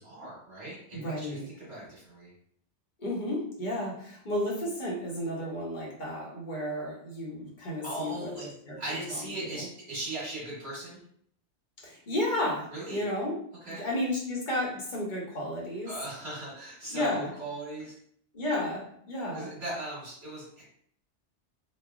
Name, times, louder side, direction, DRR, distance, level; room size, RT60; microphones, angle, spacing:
voice 1, 0.0-2.3 7.8-8.5 8.8-11.0 12.7-13.1 13.6-13.9 15.8-17.9 19.3-20.6, right 2 dB, 70° right, -8 dB, 1.5 m, -39 dB
voice 2, 0.9-1.5 3.0-8.3 8.7-9.6 11.8-13.4 13.7-15.9 16.9-17.3 18.3-19.5, left 1 dB, 45° left, -4 dB, 1.0 m, -32 dB
3.1 x 2.3 x 2.3 m, 0.64 s
omnidirectional pair, 1.2 m